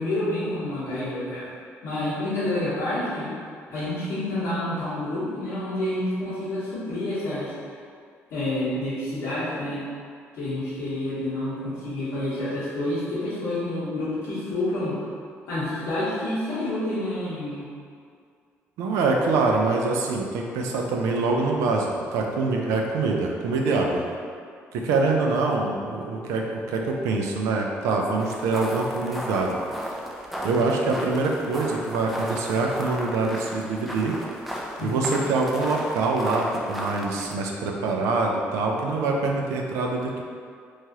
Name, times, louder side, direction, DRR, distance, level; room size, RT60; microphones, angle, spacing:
voice 1, 0.0-1.5 1.8-3.3 3.7-7.5 8.3-9.8 10.3-15.1 15.5-17.7 34.8-35.1, left 1 dB, 85° left, -14 dB, 0.9 m, -28 dB
voice 2, 18.8-24.0 24.7-29.6 30.4-34.2 34.8-40.2, right 3 dB, 90° right, 0 dB, 0.4 m, -24 dB
sound 1, 28.2-37.3, equal, ahead, 0.4 m, -35 dB
3.0 x 2.4 x 2.8 m, 2.2 s
cardioid pair, 85°, 5 cm